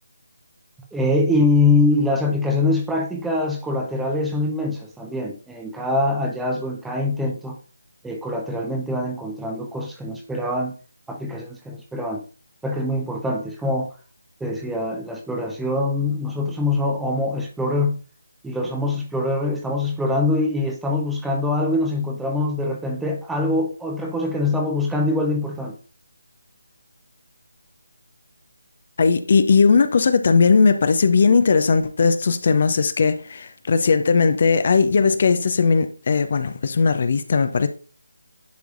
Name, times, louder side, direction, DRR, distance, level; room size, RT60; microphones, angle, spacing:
voice 1, 0.9-7.6 8.0-10.7 11.1-12.2 12.6-13.9 14.4-18.0 18.4-25.8, left 2 dB, 5° right, 0.7 m, -23 dB
voice 2, 29.0-37.7, left 5 dB, 45° left, 0.6 m, -18 dB
10.5 x 4.7 x 2.6 m
figure-of-eight pair, 155°, 0 cm